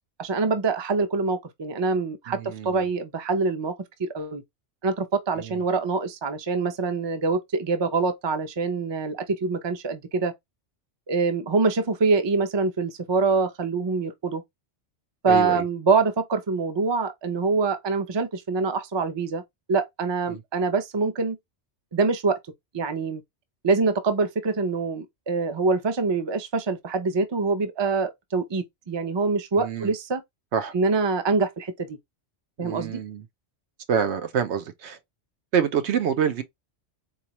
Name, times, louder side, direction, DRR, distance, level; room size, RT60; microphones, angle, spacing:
voice 1, 0.2-3.7 4.0-4.4 4.8-10.3 11.1-14.4 15.2-19.4 19.7-21.4 21.9-22.4 22.7-23.2 23.6-30.2 30.7-32.0 32.6-32.9, right 4 dB, 30° right, 0.5 m, -25 dB
voice 2, 2.3-2.9 5.4-5.6 15.3-15.6 20.3-20.4 29.6-29.9 30.5-30.7 32.6-33.3 33.9-35.0 35.5-36.4, right 7 dB, 75° right, 0.9 m, -26 dB
4.2 x 2.4 x 2.9 m
omnidirectional pair, 1.2 m